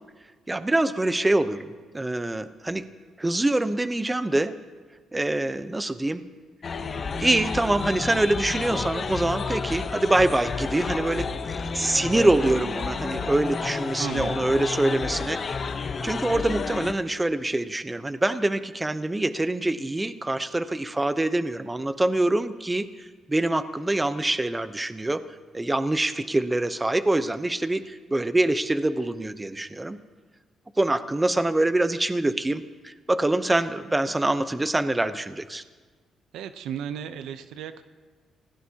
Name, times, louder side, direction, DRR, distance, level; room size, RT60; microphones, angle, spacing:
voice 1, 0.5-2.8 3.2-4.5 5.1-6.2 7.2-15.6 16.0-25.2 25.5-30.0 30.8-35.6, right 2 dB, 15° right, 11 dB, 0.8 m, -25 dB
sound 1, 6.6-16.9, left 4 dB, 45° left, 0.9 m, -31 dB
voice 2, 14.0-14.5 36.3-37.8, right 8 dB, 85° right, 11 dB, 0.7 m, -34 dB
27.5 x 17.0 x 2.9 m, 1.4 s
cardioid pair, 90°, 0 cm